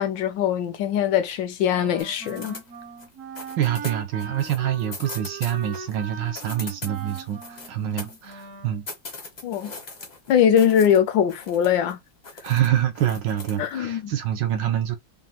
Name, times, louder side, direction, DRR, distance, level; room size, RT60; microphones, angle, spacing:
voice 1, 0.0-2.5 9.4-9.7 10.3-12.0 13.6-14.1, left 9 dB, 75° left, 1.2 m, -21 dB
Wind instrument woodwind instrument, 1.7-8.8, right 5 dB, 55° right, 0.9 m, -40 dB
sound 1, 2.0-3.1 3.4-6.0 6.3-8.5 8.9-11.0 11.3-11.9 12.2-13.7, left 3 dB, 40° left, 0.6 m, -40 dB
voice 2, 3.6-8.9 12.4-15.0, right 11 dB, 75° right, 1.2 m, -26 dB
5.3 x 2.2 x 2.9 m
omnidirectional pair, 2.2 m